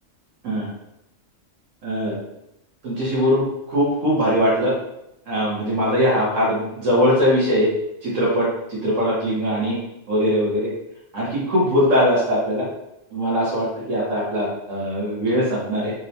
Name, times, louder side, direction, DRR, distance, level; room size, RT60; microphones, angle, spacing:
voice 1, 1.8-2.2 2.8-4.7 5.3-7.7 8.0-9.8 10.1-10.7 11.1-12.7 13.1-15.9, equal, 80° right, -6 dB, 1.3 m, -21 dB
4.3 x 2.1 x 2.7 m, 0.84 s
omnidirectional pair, 1.3 m